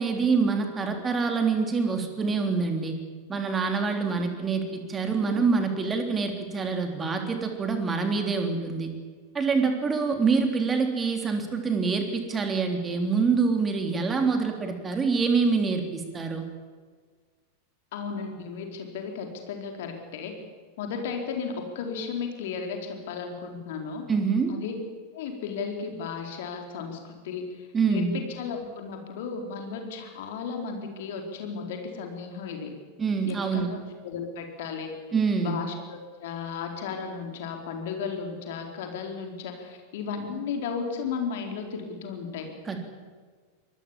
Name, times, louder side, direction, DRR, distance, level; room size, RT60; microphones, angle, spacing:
voice 1, 0.0-2.9 3.3-8.9 9.3-16.4 24.1-24.5 27.7-28.2 33.0-33.7 35.1-35.6 42.7-42.8, right 5 dB, 20° right, 5 dB, 3.6 m, -26 dB
voice 2, 17.9-20.3 20.8-24.0 24.5-24.8 25.1-32.7 33.3-33.8 34.0-34.9 35.4-42.5, left 5 dB, 55° left, 3 dB, 4.3 m, -34 dB
25.0 x 20.0 x 7.5 m, 1.5 s
figure-of-eight pair, 90°, 0 cm